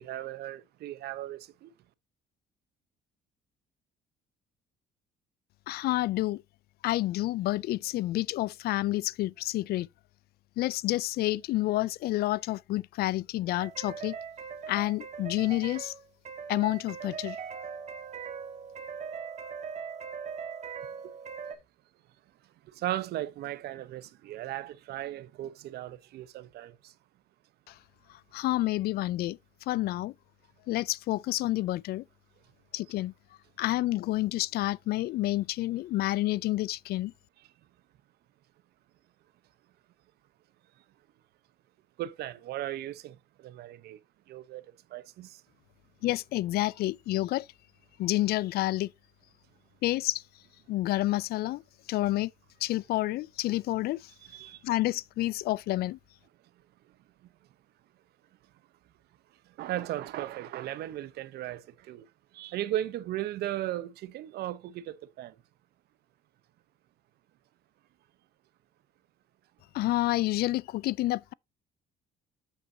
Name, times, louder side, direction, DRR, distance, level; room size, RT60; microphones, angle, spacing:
voice 1, 0.0-1.7 22.7-26.9 42.0-44.0 44.3-44.6 44.9-45.4 54.3-54.6 59.6-62.1 62.3-65.3, right 13 dB, 75° right, 0.9 m, -36 dB
voice 2, 5.7-6.4 6.8-9.9 10.6-14.2 14.7-15.9 16.5-17.4 27.7-27.8 28.1-29.4 29.7-30.1 30.7-32.0 32.7-33.1 33.6-37.1 46.0-47.5 48.0-48.9 49.8-50.2 50.7-51.6 51.9-52.3 52.6-54.1 54.6-56.0 69.7-71.3, left 16 dB, 65° left, 0.4 m, -29 dB
sound 1, 13.6-21.6, right 6 dB, 40° right, 1.6 m, -40 dB
8.5 x 8.1 x 2.8 m
cardioid pair, 110°, 17 cm